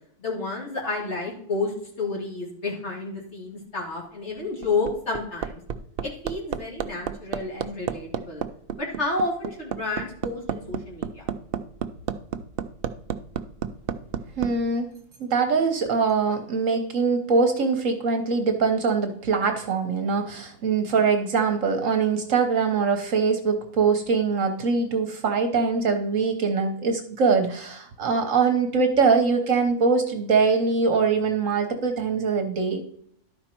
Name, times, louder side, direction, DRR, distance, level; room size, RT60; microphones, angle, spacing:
voice 1, 0.2-5.6 6.0-8.4 8.8-11.3, left 3 dB, 45° left, -2 dB, 3.0 m, -30 dB
Hammer, 4.4-14.5 15.9-16.0, right 8 dB, 80° right, 0.5 m, -30 dB
voice 2, 14.4-14.9 15.2-32.8, right 5 dB, 60° right, 6 dB, 1.2 m, -23 dB
12.0 x 5.2 x 4.5 m, 0.66 s
omnidirectional pair, 1.6 m